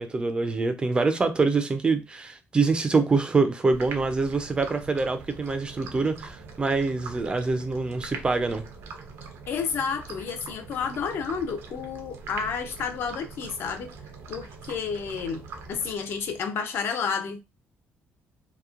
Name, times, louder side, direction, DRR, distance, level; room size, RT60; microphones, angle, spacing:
voice 1, 0.0-8.6, right 4 dB, 20° right, 0.4 m, -25 dB
sound 1, 3.7-16.4, right 4 dB, 75° right, 0.5 m, -43 dB
voice 2, 9.5-13.9 14.3-17.4, left 6 dB, 60° left, 0.5 m, -31 dB
2.9 x 2.1 x 2.3 m
cardioid pair, 130°, 4 cm